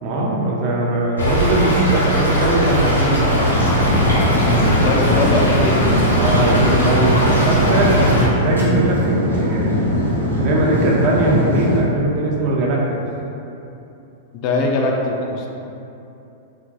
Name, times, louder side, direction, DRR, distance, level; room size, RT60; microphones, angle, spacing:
voice 1, 0.0-4.1 6.2-9.8 10.4-12.8, right 2 dB, 40° right, -3 dB, 0.5 m, -20 dB
Stream / Trickle dribble, 1.2-8.3, equal, 85° left, 0.9 m, -19 dB
sound 1, 3.5-11.8, equal, 80° right, 0.7 m, -20 dB
voice 2, 4.3-6.0 14.4-15.4, left 2 dB, 40° left, 0 dB, 0.3 m, -21 dB
2.6 x 2.2 x 3.8 m, 2.8 s
figure-of-eight pair, 100°, 0 cm